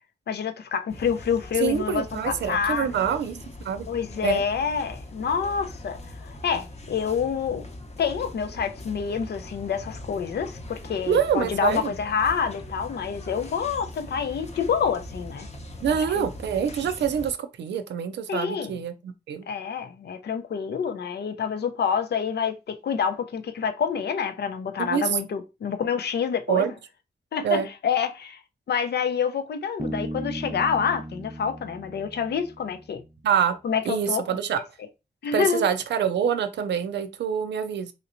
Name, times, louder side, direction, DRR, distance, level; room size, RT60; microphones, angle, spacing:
voice 1, 0.3-2.9 3.9-7.6 8.0-15.5 15.9-16.2 18.3-18.7 19.5-26.7 27.3-28.4 28.7-33.0 33.6-34.2 35.2-35.6, left 6 dB, 70° left, 0.5 m, -27 dB
sound 1, 0.9-17.3, left 1 dB, 40° left, 0.7 m, -41 dB
voice 2, 1.6-3.9 4.2-4.4 11.1-11.9 15.8-19.5 24.8-25.0 26.5-26.7 27.4-27.7 33.2-33.6 33.8-34.6 35.3-37.9, right 8 dB, 85° right, 0.4 m, -26 dB
Bass guitar, 29.8-33.3, right 1 dB, 15° right, 0.4 m, -36 dB
3.1 x 2.9 x 2.5 m
cardioid pair, 45°, 18 cm